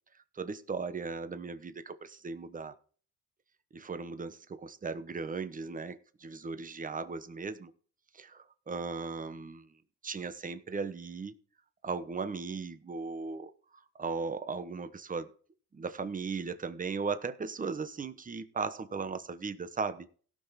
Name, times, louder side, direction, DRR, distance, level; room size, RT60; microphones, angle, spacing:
voice 1, 0.3-2.7 3.7-7.7 8.1-9.7 10.0-11.3 11.8-13.5 13.9-15.3 15.7-20.1, right 4 dB, 25° right, 11 dB, 1.0 m, -37 dB
17.0 x 6.0 x 4.2 m, 0.42 s
cardioid pair, 90°, 30 cm